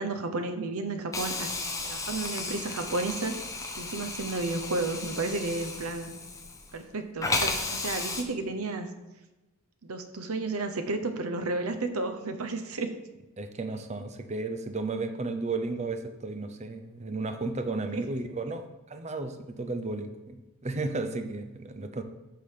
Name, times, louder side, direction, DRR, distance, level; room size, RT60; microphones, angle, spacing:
voice 1, 0.0-1.5 1.8-3.3 3.8-6.1 6.7-8.9 9.8-12.9 17.9-18.0, right 3 dB, 75° right, 8 dB, 0.9 m, -32 dB
Hiss, 1.1-6.8 7.2-8.2, left 3 dB, 15° left, 0.8 m, -34 dB
voice 2, 13.4-22.0, right 3 dB, 30° right, 8 dB, 0.6 m, -34 dB
8.4 x 3.9 x 6.6 m, 1.1 s
head